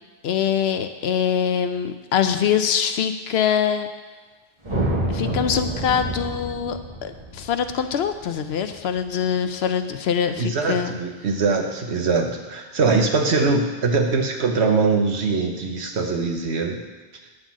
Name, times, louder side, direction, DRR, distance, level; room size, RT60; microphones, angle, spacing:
voice 1, 0.2-3.9 5.1-11.0, left 8 dB, 70° left, 8 dB, 0.8 m, -23 dB
sound 1, 4.6-9.0, right 1 dB, 30° right, 1.2 m, -28 dB
voice 2, 10.4-16.8, right 4 dB, 80° right, 3 dB, 1.2 m, -22 dB
9.8 x 3.8 x 7.3 m, 1.3 s
omnidirectional pair, 1.1 m